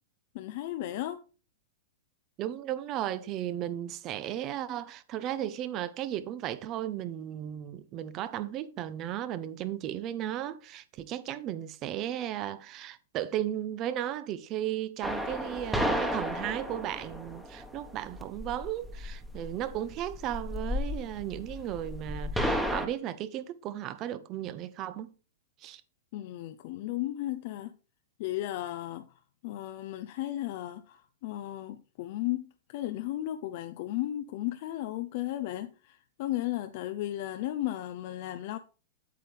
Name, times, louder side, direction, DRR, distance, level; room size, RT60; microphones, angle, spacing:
voice 1, 0.3-1.2 26.1-27.7 28.2-29.1 29.4-38.6, left 14 dB, 55° left, 0.6 m, -35 dB
voice 2, 2.4-25.1 25.6-25.8, right 11 dB, 35° right, 0.8 m, -35 dB
sound 1, 15.0-22.9, equal, 5° right, 1.3 m, -33 dB
8.5 x 7.6 x 3.4 m
hypercardioid pair, 125°, 0 cm